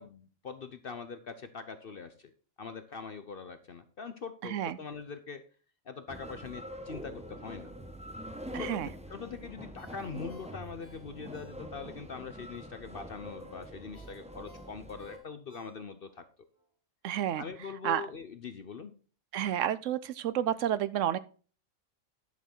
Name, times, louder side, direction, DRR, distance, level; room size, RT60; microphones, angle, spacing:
voice 1, 0.0-2.3 2.6-5.4 5.9-7.7 8.5-16.2 17.4-18.9, left 5 dB, 50° left, 10 dB, 0.9 m, -43 dB
sound 1, 6.1-15.2, equal, 5° right, 1.2 m, -45 dB
voice 2, 8.5-8.9 17.0-17.4 17.8-18.0 19.3-21.2, right 10 dB, 75° right, 16 dB, 1.0 m, -30 dB
Ringtone, 9.7-12.0 12.4-12.5 13.9-16.2 16.6-16.7, equal, 30° left, 3.9 m, -59 dB
11.0 x 6.9 x 4.4 m, 0.39 s
omnidirectional pair, 1.3 m